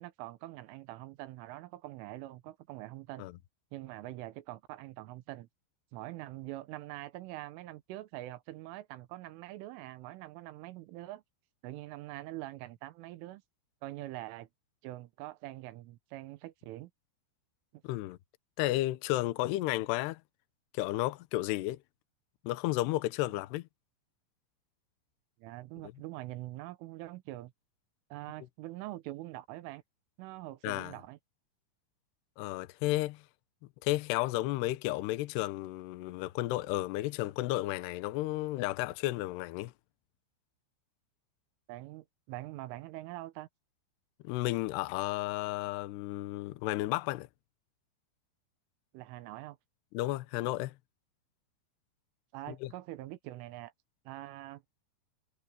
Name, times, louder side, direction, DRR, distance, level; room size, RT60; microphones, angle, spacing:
voice 1, 0.0-3.3 3.7-5.5 5.9-11.2 11.6-13.4 13.8-14.5 14.8-16.9 17.7-17.8 25.4-27.5 28.1-29.8 30.2-31.2 41.7-43.5 48.9-49.6 52.3-53.7 54.1-54.6, right 17 dB, 80° right, 3.5 m, -44 dB
voice 2, 17.8-18.2 18.6-20.2 20.7-21.8 22.4-23.7 30.6-31.0 32.4-33.2 33.8-39.7 44.2-47.3 49.9-50.7 52.6-52.7, left 17 dB, 75° left, 2.5 m, -32 dB
omnidirectional pair, 5.7 m